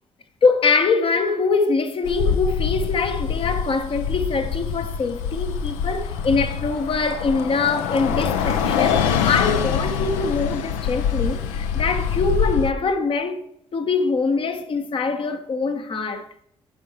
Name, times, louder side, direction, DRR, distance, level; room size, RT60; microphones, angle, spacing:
voice 1, 0.4-13.4 13.7-16.3, left 4 dB, 40° left, 1.1 m, -23 dB
Bus, 2.0-12.7, left 7 dB, 65° left, 0.6 m, -24 dB
15.5 x 5.5 x 3.0 m
figure-of-eight pair, 45°, 13 cm